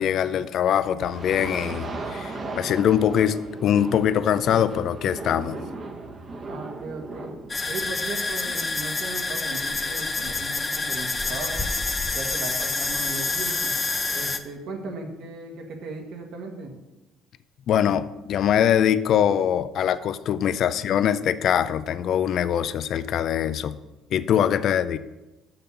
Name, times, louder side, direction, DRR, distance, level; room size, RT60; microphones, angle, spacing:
voice 1, 0.0-5.6 17.7-23.8 24.1-25.0, left 9 dB, 60° left, 13 dB, 0.4 m, -23 dB
sound 1, 1.0-7.9, right 3 dB, 35° right, 1.0 m, -36 dB
voice 2, 6.4-7.3 7.7-11.6 12.1-13.7 14.1-16.7, right 3 dB, 75° right, 2 dB, 1.7 m, -37 dB
sound 2, 7.5-14.4, left 3 dB, 25° left, 0.6 m, -27 dB
6.8 x 5.8 x 6.8 m, 1.0 s
cardioid pair, 105°, 0 cm